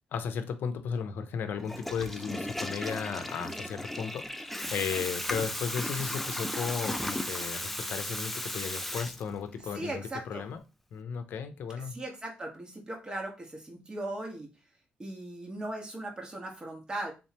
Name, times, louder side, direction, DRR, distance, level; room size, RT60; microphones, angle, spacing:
voice 1, 0.1-10.6 10.9-11.9, left 6 dB, 75° left, 9 dB, 0.6 m, -35 dB
Water tap faucet / Toilet flush, 1.6-9.6, left 1 dB, 5° left, 0.3 m, -35 dB
voice 2, 9.7-10.5 11.9-14.5 15.0-17.1, right 1 dB, 25° right, 1 dB, 1.2 m, -38 dB
3.6 x 3.2 x 2.8 m, 0.29 s
cardioid pair, 110°, 3 cm